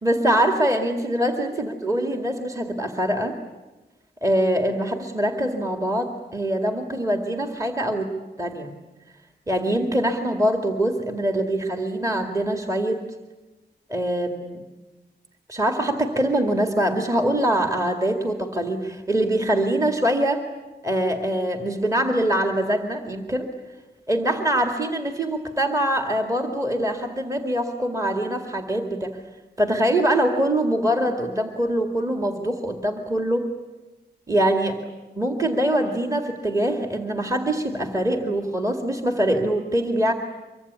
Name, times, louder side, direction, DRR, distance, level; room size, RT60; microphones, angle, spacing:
voice 1, 0.0-3.4 4.2-8.1 8.4-8.7 9.5-13.0 13.9-14.6 15.5-20.4 20.8-23.5 24.1-29.2 29.6-33.5 34.3-34.8 35.2-40.1, right 1 dB, 20° right, 4 dB, 2.2 m, -23 dB
25.0 x 24.0 x 9.6 m, 1.1 s
wide cardioid pair, 155°, 18 cm